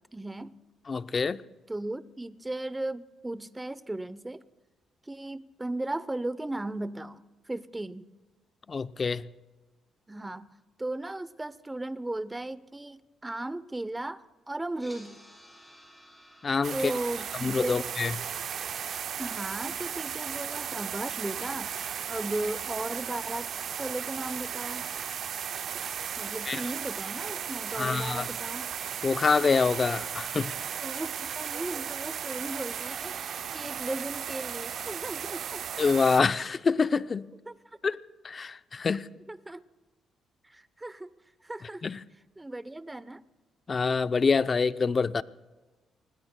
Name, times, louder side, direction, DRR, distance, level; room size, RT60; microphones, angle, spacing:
voice 1, 0.1-0.6 1.7-4.4 5.0-8.0 10.1-10.5 10.8-15.2 16.7-17.8 19.2-21.7 22.1-23.5 23.8-24.8 26.2-28.7 30.8-33.2 33.5-35.7 37.5-37.6 39.3-39.6 40.4-41.1 41.4-41.9 42.4-43.2, right 2 dB, 15° right, 0.7 m, -36 dB
voice 2, 0.9-1.4 8.7-9.2 16.4-16.9 17.4-18.1 26.5-26.6 27.8-28.2 29.0-30.5 35.8-37.3 37.8-38.0 38.2-39.1 41.8-42.0 43.7-45.2, left 5 dB, 35° left, 0.5 m, -26 dB
sound 1, 14.7-24.8, equal, 5° left, 6.7 m, -58 dB
sound 2, 16.6-36.2, right 8 dB, 60° right, 0.5 m, -35 dB
29.5 x 20.5 x 2.2 m
cardioid pair, 90°, 0 cm